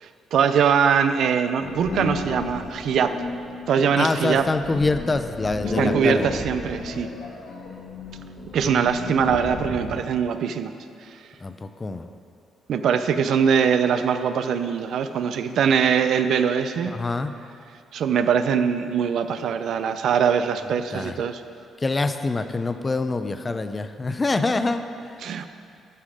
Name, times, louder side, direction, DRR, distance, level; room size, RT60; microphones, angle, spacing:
voice 1, 0.0-3.1 3.7-4.5 5.8-7.1 8.5-10.7 12.7-17.0 17.9-21.4 25.2-25.5, right 7 dB, 70° right, 10 dB, 0.5 m, -22 dB
sound 1, 1.6-10.1, left 2 dB, 80° left, 1.9 m, -32 dB
voice 2, 4.0-6.4 11.4-12.1 16.9-17.3 20.9-21.2 21.8-25.2, left 3 dB, 25° left, 9 dB, 0.5 m, -25 dB
12.5 x 5.7 x 5.0 m, 2.4 s
cardioid pair, 90°, 0 cm